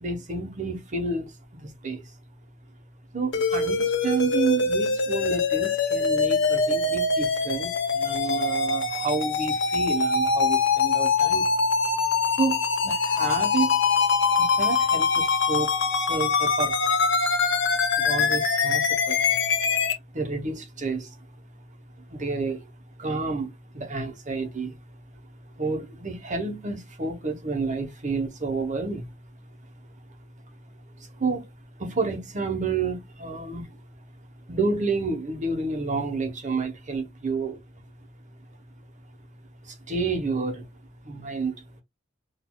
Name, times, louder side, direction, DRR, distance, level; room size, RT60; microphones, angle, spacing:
voice 1, 0.0-1.3 1.6-2.0 3.1-11.5 12.4-13.8 14.4-17.0 18.0-19.2 20.1-21.2 22.1-22.7 23.0-24.7 25.6-29.1 31.2-31.5 31.8-33.7 34.5-37.6 39.6-40.7 41.0-41.8, right 4 dB, 40° right, 0.9 m, -30 dB
sound 1, 3.3-19.9, left 4 dB, 65° left, 1.0 m, -23 dB
6.2 x 2.6 x 2.2 m
head